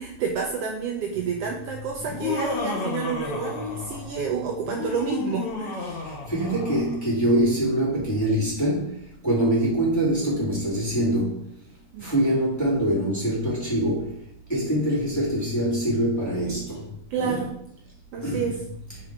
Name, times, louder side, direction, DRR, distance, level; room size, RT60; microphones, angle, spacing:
voice 1, 0.0-6.0 11.9-12.1 17.1-17.5 18.1-18.5, right 5 dB, 85° right, 1 dB, 1.4 m, -29 dB
Laughter, 2.0-4.2 4.6-7.0, left 3 dB, 70° left, 2.4 m, -32 dB
voice 2, 6.3-8.9 9.2-11.4 12.0-14.1 14.5-16.8 17.2-17.4 18.2-18.5, right 1 dB, 5° left, -8 dB, 2.2 m, -24 dB
5.9 x 4.8 x 4.6 m, 0.72 s
omnidirectional pair, 3.5 m